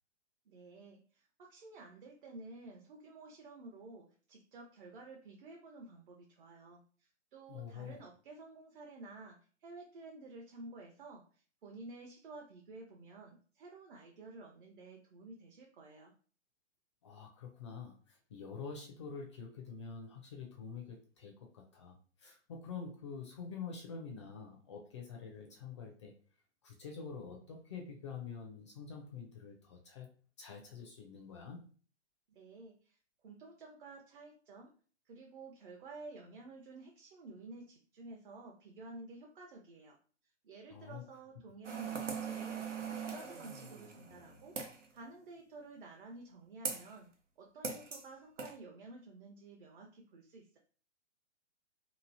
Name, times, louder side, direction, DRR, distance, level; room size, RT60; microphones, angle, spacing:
voice 1, 0.5-16.1 32.3-33.0 33.2-34.7 35.1-40.0 40.4-42.7 43.0-44.6 44.9-47.1 47.4-50.6, right 3 dB, 50° right, 0 dB, 0.7 m, -52 dB
voice 2, 7.5-8.0 17.0-26.1 26.6-30.1 30.4-31.6 40.7-41.0, left 5 dB, 25° left, 1 dB, 0.4 m, -47 dB
sound 1, 41.6-44.9 46.6-46.9 47.6-48.0 48.4-48.5, right 5 dB, 85° right, 0.8 m, -41 dB
3.0 x 2.5 x 2.6 m, 0.40 s
figure-of-eight pair, 125°, 35 cm